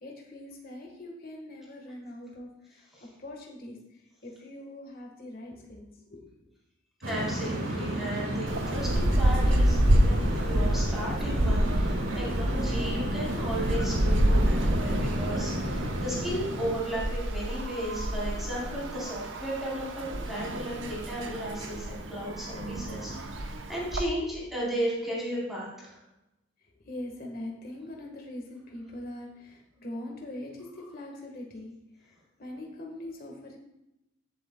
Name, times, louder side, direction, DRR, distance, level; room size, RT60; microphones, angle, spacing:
voice 1, 0.0-2.8 3.2-3.8 4.2-6.2 26.8-31.7 32.4-33.6, left 1 dB, 45° left, 0 dB, 1.5 m, -42 dB
sound 1, 7.0-16.8, equal, 90° right, 2.3 m, -32 dB
voice 2, 7.1-26.0, equal, ahead, -7 dB, 3.9 m, -35 dB
sound 2, 8.5-24.0, right 1 dB, 65° right, 0.9 m, -28 dB
15.5 x 7.6 x 2.3 m, 0.90 s
head